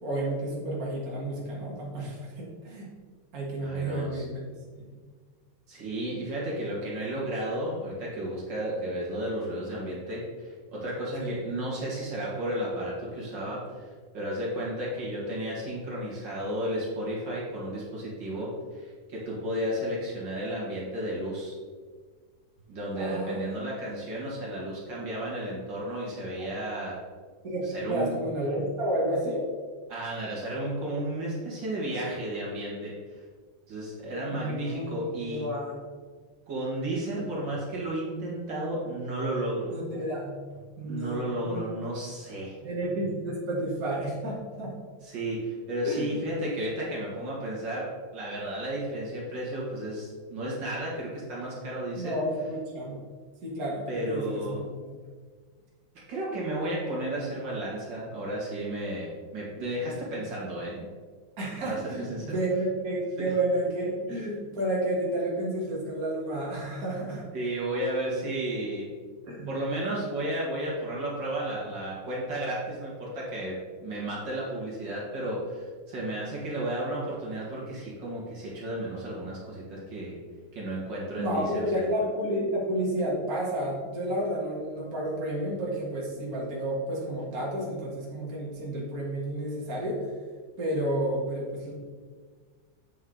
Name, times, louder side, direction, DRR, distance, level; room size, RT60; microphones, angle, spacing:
voice 1, 0.0-2.9 3.3-4.3 4.7-4.9 11.2-11.4 23.0-23.6 26.4-26.5 27.4-29.5 34.3-35.7 39.7-40.4 40.8-41.7 42.6-44.7 45.8-46.1 52.0-53.0 53.4-54.9 61.4-67.3 69.2-69.5 81.2-90.1 90.6-91.7, right 1 dB, 50° right, -5 dB, 2.1 m, -31 dB
voice 2, 3.6-4.3 5.7-13.9 14.1-21.6 22.7-27.0 27.7-28.1 29.9-33.2 33.7-35.5 36.5-39.7 40.8-42.6 45.0-52.1 53.9-54.6 56.1-60.8 61.7-62.2 63.2-63.3 67.3-68.9 69.5-80.2 80.5-81.8, right 1 dB, 70° right, -5 dB, 2.5 m, -33 dB
8.2 x 5.4 x 3.9 m, 1.5 s
omnidirectional pair, 2.1 m